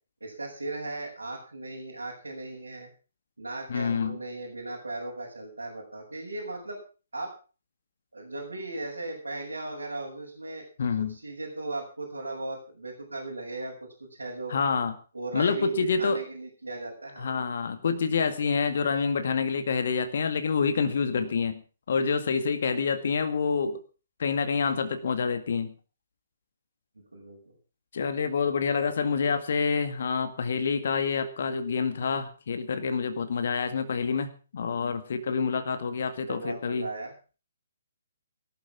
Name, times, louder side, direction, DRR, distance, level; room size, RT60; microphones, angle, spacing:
voice 1, 0.2-2.9 3.4-6.8 7.1-7.3 8.1-10.6 11.0-13.7 14.1-14.6 15.1-17.3 27.0-27.5 36.3-37.1, right 2 dB, 75° right, -3 dB, 7.0 m, -37 dB
voice 2, 3.7-4.2 10.8-11.2 14.5-14.9 15.3-16.2 17.2-21.6 21.9-23.8 24.2-25.7 27.9-36.9, left 5 dB, 50° left, 9 dB, 2.1 m, -27 dB
18.5 x 12.5 x 5.9 m, 0.38 s
figure-of-eight pair, 130°, 0 cm